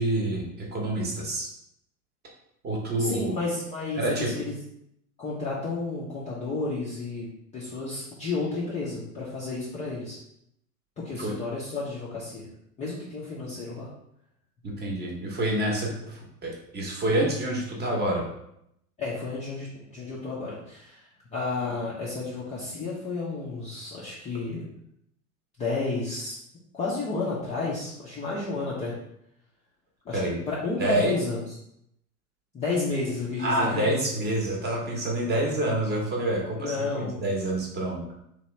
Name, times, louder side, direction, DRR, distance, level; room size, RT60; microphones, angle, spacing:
voice 1, 0.0-1.5 2.6-3.4 3.9-4.3 11.2-11.3 14.6-18.2 30.1-30.4 30.8-31.1 33.4-38.0, right 1 dB, 20° right, -1 dB, 0.8 m, -27 dB
voice 2, 3.0-4.5 5.2-10.2 11.0-12.5 12.8-13.9 19.0-24.6 25.6-26.4 26.7-28.9 30.1-30.2 30.5-31.4 32.5-34.0 36.6-37.2, left 3 dB, 15° left, -7 dB, 0.4 m, -31 dB
3.0 x 2.2 x 3.0 m, 0.77 s
figure-of-eight pair, 90°, 46 cm